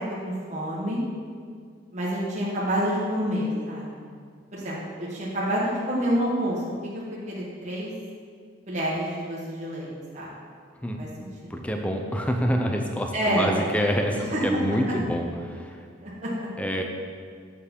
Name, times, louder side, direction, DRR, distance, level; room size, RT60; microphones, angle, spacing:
voice 1, 0.2-1.0 1.9-4.1 4.5-6.6 7.3-7.9 8.7-10.3 11.0-11.6 13.1-13.5 14.3-14.4 16.0-16.5, equal, 40° right, -6 dB, 1.6 m, -28 dB
voice 2, 11.5-15.9 16.6-16.8, equal, 5° left, 3 dB, 0.6 m, -27 dB
7.3 x 6.7 x 5.4 m, 2.1 s
head